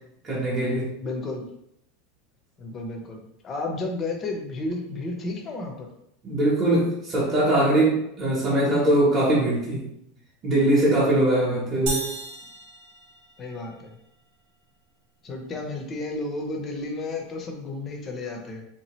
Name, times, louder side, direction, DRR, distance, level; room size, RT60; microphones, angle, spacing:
voice 1, 0.2-0.9 6.2-9.8 10.4-12.1, right 1 dB, 20° right, -8 dB, 0.9 m, -21 dB
voice 2, 1.0-1.5 2.6-5.9 11.5-11.7 13.4-13.9 15.2-18.6, left 2 dB, 20° left, 2 dB, 0.6 m, -32 dB
sound 1, 11.9-13.8, right 2 dB, 55° right, 0.9 m, -34 dB
3.6 x 2.7 x 3.0 m, 0.77 s
supercardioid pair, 170°, 0 cm